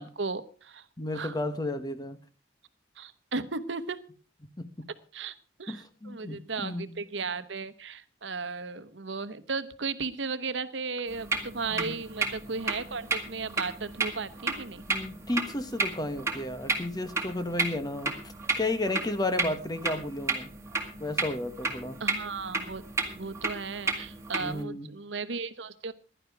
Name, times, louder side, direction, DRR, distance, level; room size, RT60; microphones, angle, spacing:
voice 1, 0.0-0.9 1.1-1.3 3.0-4.0 5.1-14.8 22.0-22.8 23.1-25.9, right 4 dB, 80° right, 13 dB, 1.0 m, -35 dB
voice 2, 1.0-2.2 4.6-4.9 5.7-7.0 11.7-11.9 14.9-20.5 21.0-22.0 24.4-24.9, left 1 dB, 20° left, 10 dB, 1.1 m, -33 dB
sound 1, 11.1-24.6, right 3 dB, 15° right, 2.0 m, -33 dB
16.0 x 11.0 x 4.7 m, 0.38 s
head